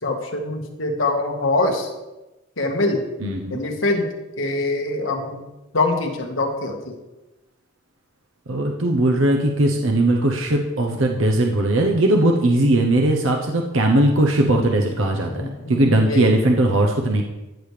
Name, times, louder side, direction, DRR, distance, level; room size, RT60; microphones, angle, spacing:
voice 1, 0.0-1.9 2.6-3.0 3.5-4.1 4.4-5.4 5.7-7.0 15.3-16.3, left 2 dB, 75° left, 2 dB, 1.6 m, -24 dB
voice 2, 3.2-3.6 8.5-17.2, right 1 dB, 80° right, 2 dB, 0.9 m, -19 dB
14.0 x 6.9 x 3.3 m, 1.0 s
head